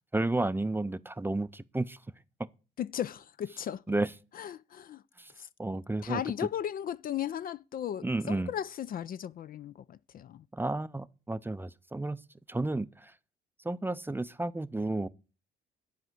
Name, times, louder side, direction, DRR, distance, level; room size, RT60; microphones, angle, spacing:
voice 1, 0.1-2.0 3.9-4.1 5.2-5.3 5.6-6.2 8.0-8.5 10.5-12.2 12.5-13.1 13.6-15.1, right 2 dB, 10° right, 0.5 m, -32 dB
voice 2, 2.8-3.8 4.3-5.0 5.4-5.5 6.0-10.4, left 10 dB, 45° left, 0.4 m, -36 dB
10.5 x 4.9 x 7.7 m
hypercardioid pair, 55°, 21 cm